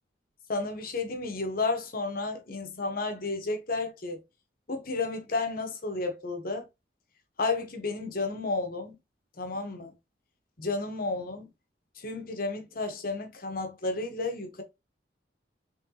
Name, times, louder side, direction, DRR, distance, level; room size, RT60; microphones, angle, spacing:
voice 1, 0.5-4.2 4.7-6.7 7.4-9.0 9.4-9.9 10.6-11.5 12.0-14.6, left 3 dB, 50° left, 1.0 m, -32 dB
3.8 x 3.5 x 2.8 m
head